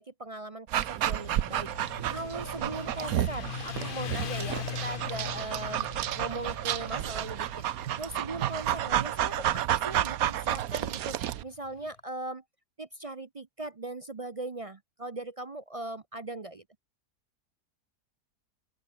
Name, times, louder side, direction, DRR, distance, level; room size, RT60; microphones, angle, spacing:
voice 1, 0.0-1.7 2.1-7.5 8.0-12.4 12.8-16.6, right 2 dB, 40° right, 0.5 m, -39 dB
Dog, 0.7-11.4, right 12 dB, 65° right, 1.1 m, -31 dB
Motorcycle, 0.8-11.9, left 9 dB, 75° left, 0.4 m, -42 dB
open air
omnidirectional pair, 1.7 m